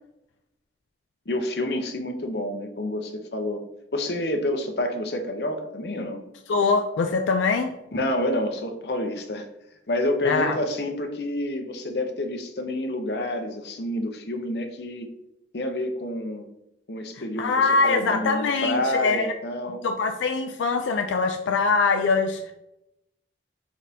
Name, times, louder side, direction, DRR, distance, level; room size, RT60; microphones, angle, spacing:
voice 1, 1.3-3.6 3.9-6.2 7.9-9.5 9.9-15.1 15.5-16.4 16.9-19.8, left 1 dB, 60° left, 0.7 m, -28 dB
voice 2, 6.5-7.8 10.2-10.6 17.4-19.3 19.8-22.5, left 4 dB, 85° left, 0.4 m, -23 dB
4.8 x 4.1 x 2.7 m
head